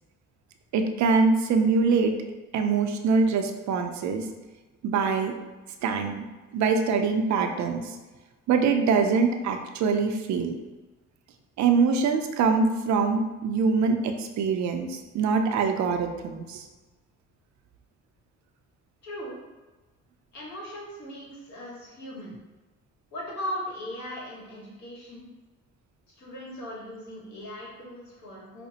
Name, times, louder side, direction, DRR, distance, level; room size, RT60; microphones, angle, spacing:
voice 1, 0.7-2.1 2.5-4.3 4.8-5.3 5.8-6.3 6.5-8.0 8.5-10.5 11.6-16.6, right 5 dB, 70° right, 5 dB, 0.5 m, -24 dB
voice 2, 19.0-19.4 20.3-22.4 23.1-25.3 26.1-28.7, equal, 65° left, -4 dB, 1.5 m, -38 dB
5.0 x 2.1 x 2.7 m, 1.2 s
cardioid pair, 90°, 30 cm